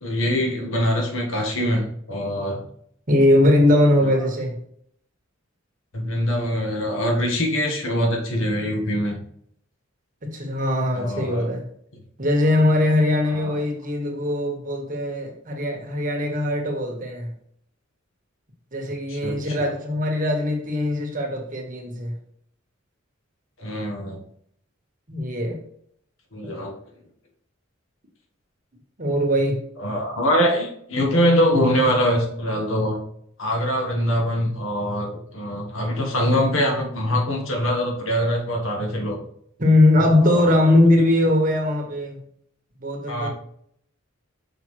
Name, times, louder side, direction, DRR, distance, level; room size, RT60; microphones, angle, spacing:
voice 1, 0.0-2.6 4.0-4.1 5.9-9.2 10.9-11.5 13.3-13.6 19.1-19.7 23.6-24.2 26.3-26.7 29.8-33.0 33.4-39.2 40.3-40.6 43.1-43.3, equal, 70° left, 1 dB, 1.3 m, -23 dB
voice 2, 3.1-4.6 10.2-11.6 12.2-17.3 18.7-22.1 25.1-25.6 26.4-26.5 29.0-29.6 39.6-42.2 42.8-43.3, left 1 dB, 40° right, 1 dB, 1.3 m, -20 dB
6.1 x 5.3 x 3.1 m, 0.67 s
head